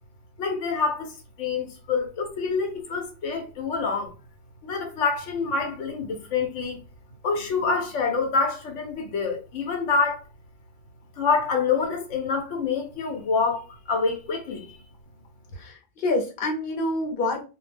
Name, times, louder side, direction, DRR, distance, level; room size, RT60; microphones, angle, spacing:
voice 1, 0.4-4.1 4.6-6.8 7.2-10.2 11.2-14.8, left 5 dB, 80° left, 1.0 m, -26 dB
voice 2, 15.5-17.4, left 2 dB, 55° left, 0.8 m, -27 dB
2.3 x 2.1 x 3.2 m
omnidirectional pair, 1.2 m